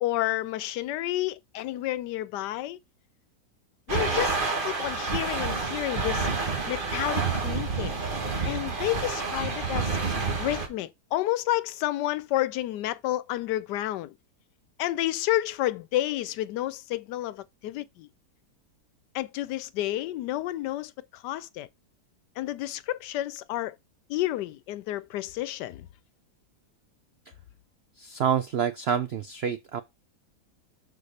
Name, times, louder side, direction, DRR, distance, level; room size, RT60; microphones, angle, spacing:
voice 1, 0.0-2.8 3.9-6.3 6.7-8.0 8.5-10.0 10.4-14.1 14.8-18.1 19.1-21.7 22.4-23.8 24.1-25.9, left 15 dB, 90° left, 1.2 m, -30 dB
sound 1, 3.9-10.7, right 4 dB, 35° right, 1.5 m, -29 dB
voice 2, 28.0-29.8, right 8 dB, 80° right, 0.5 m, -27 dB
6.5 x 4.5 x 4.1 m
omnidirectional pair, 1.8 m